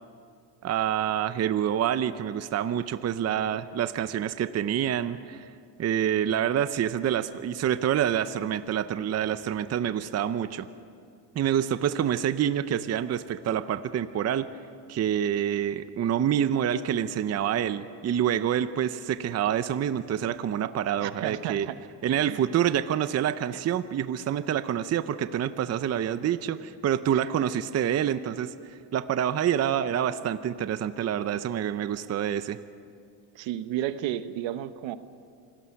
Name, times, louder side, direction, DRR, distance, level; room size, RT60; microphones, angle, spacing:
voice 1, 0.6-5.5 5.8-10.7 11.3-14.5 14.9-21.7 22.0-32.6, right 9 dB, 35° right, 12 dB, 0.7 m, -27 dB
voice 2, 21.0-21.8 22.2-22.4 27.1-27.5 33.3-35.0, right 12 dB, 75° right, 12 dB, 1.2 m, -33 dB
27.0 x 19.5 x 5.8 m, 2.3 s
cardioid pair, 120°, 46 cm